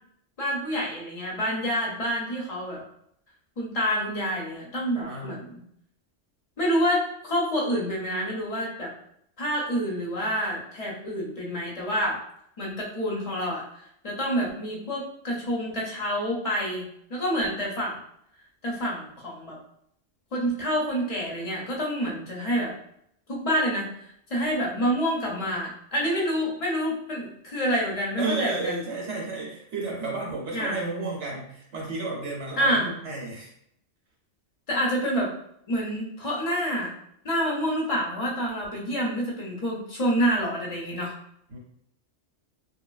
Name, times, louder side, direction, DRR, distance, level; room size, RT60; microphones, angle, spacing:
voice 1, 0.4-2.8 3.6-5.6 6.6-8.9 9.4-12.2 12.6-18.0 18.6-19.6 20.3-22.7 23.3-28.8 30.5-30.8 32.6-32.9 34.7-35.3 35.7-36.9 37.2-41.1, equal, 35° left, -3 dB, 0.6 m, -28 dB
voice 2, 4.9-5.3 28.2-33.5 41.5-41.6, right 3 dB, 70° right, -3 dB, 1.0 m, -32 dB
2.9 x 2.2 x 2.3 m, 0.72 s
omnidirectional pair, 1.2 m